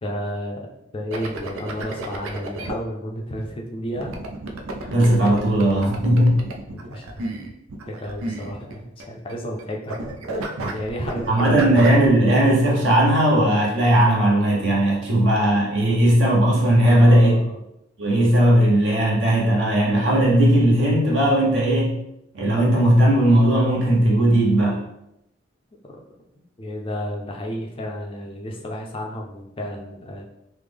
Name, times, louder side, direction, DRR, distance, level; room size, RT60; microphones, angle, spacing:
voice 1, 0.0-0.7 0.9-4.1 6.7-7.1 7.9-10.0 10.4-11.7 16.9-17.6 25.9-26.0 26.6-30.2, equal, 25° left, 0 dB, 0.4 m, -32 dB
sound 1, 1.1-2.7 4.0-9.6 9.9-12.1, right 2 dB, 90° right, 0.4 m, -32 dB
voice 2, 4.9-6.4 11.3-17.4 18.0-22.0 22.3-24.8, right 1 dB, 60° right, -3 dB, 0.8 m, -17 dB
3.2 x 2.1 x 3.4 m, 0.82 s
head